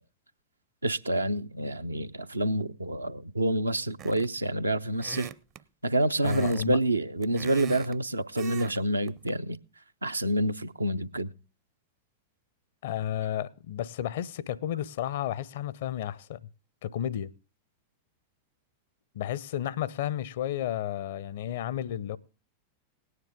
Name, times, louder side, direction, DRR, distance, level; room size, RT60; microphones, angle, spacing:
voice 1, 0.8-5.3 5.8-9.6 10.0-11.3, right 1 dB, 80° right, 0.5 m, -28 dB
sound 1, 4.0-4.4 5.0-5.6 6.2-6.7 7.0-8.0 8.4-8.8 9.1-9.3, right 10 dB, 35° right, 0.5 m, -41 dB
voice 2, 6.2-6.8 12.8-16.4 16.8-17.3 19.1-22.2, left 11 dB, 55° left, 0.6 m, -32 dB
18.0 x 9.6 x 3.6 m
figure-of-eight pair, 90°, 0 cm